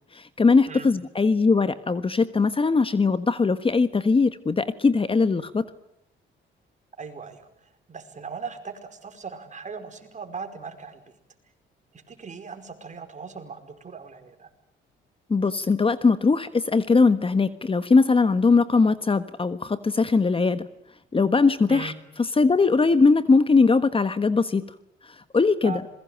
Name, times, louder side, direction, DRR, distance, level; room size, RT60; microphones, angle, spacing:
voice 1, 0.1-5.7 15.3-20.7 21.1-21.9 22.2-24.6 25.3-25.8, left 4 dB, 25° left, 12 dB, 1.3 m, -20 dB
voice 2, 7.0-11.1 12.1-14.5 21.7-21.9 25.6-25.9, right 5 dB, 40° right, 7 dB, 5.1 m, -39 dB
27.5 x 21.5 x 9.2 m, 0.79 s
cardioid pair, 90°, 20 cm